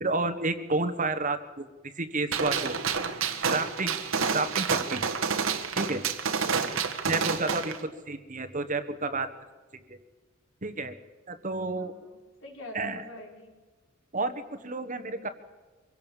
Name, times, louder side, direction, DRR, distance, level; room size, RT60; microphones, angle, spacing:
voice 1, 0.0-2.8 3.5-4.0 4.3-5.1 5.7-6.0 7.1-9.3 9.9-10.0 10.6-11.0 11.3-11.9 12.7-13.0 14.1-15.3, right 3 dB, 40° right, 11 dB, 1.4 m, -30 dB
Gunshot gunfire, 2.3-7.8, right 6 dB, 75° right, 1.6 m, -29 dB
voice 2, 11.7-13.5, left 1 dB, 65° left, 1 dB, 5.0 m, -47 dB
24.0 x 17.0 x 7.4 m, 1.3 s
head